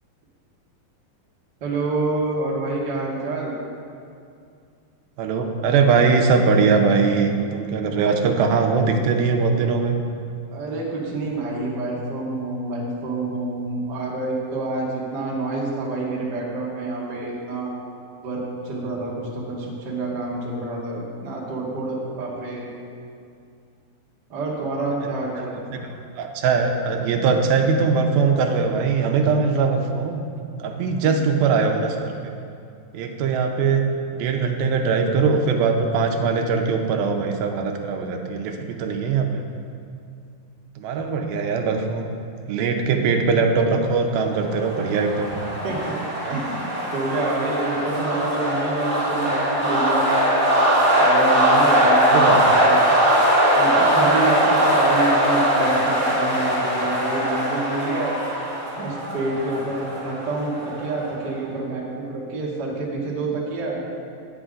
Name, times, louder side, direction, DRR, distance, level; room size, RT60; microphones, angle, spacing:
voice 1, 1.6-3.5 10.5-17.7 18.2-22.7 24.3-25.6 31.0-31.3 45.6-45.9 46.3-50.5 51.0-52.8 53.5-58.2 58.7-63.8, right 2 dB, 60° right, -4 dB, 1.1 m, -27 dB
voice 2, 5.2-10.0 25.7-25.8 26.2-30.2 30.6-32.3 32.9-33.9 34.1-39.3 40.8-42.1 42.5-45.3 46.2-46.4 52.1-52.4, right 5 dB, 85° right, 3 dB, 2.5 m, -21 dB
sound 1, 44.4-61.1, equal, 10° right, 1.0 m, -20 dB
9.7 x 7.9 x 3.8 m, 2.4 s
omnidirectional pair, 4.2 m